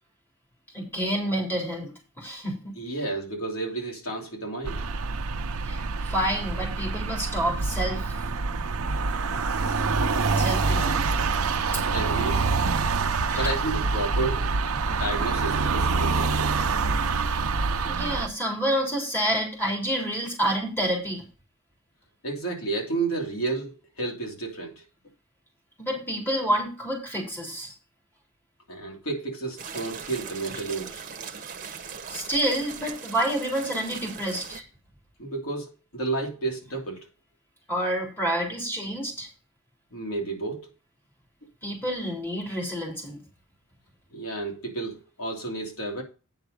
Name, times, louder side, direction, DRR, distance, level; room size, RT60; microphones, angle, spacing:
voice 1, 0.7-2.7 5.7-8.3 10.4-11.1 11.7-11.8 13.3-13.5 14.8-14.9 17.9-21.3 25.8-27.7 32.1-34.6 37.7-39.3 41.6-43.2, right 1 dB, 10° left, -1 dB, 3.6 m, -28 dB
voice 2, 2.8-4.8 10.3-10.9 11.9-12.5 13.3-14.5 14.9-16.5 22.2-24.8 28.7-31.0 35.2-37.1 39.9-40.7 44.1-46.0, right 3 dB, 80° left, 0 dB, 2.8 m, -32 dB
sound 1, 4.7-18.3, right 4 dB, 80° right, 0.7 m, -26 dB
sound 2, 29.6-34.6, right 6 dB, 40° right, 1.2 m, -39 dB
9.3 x 5.9 x 5.1 m, 0.33 s
head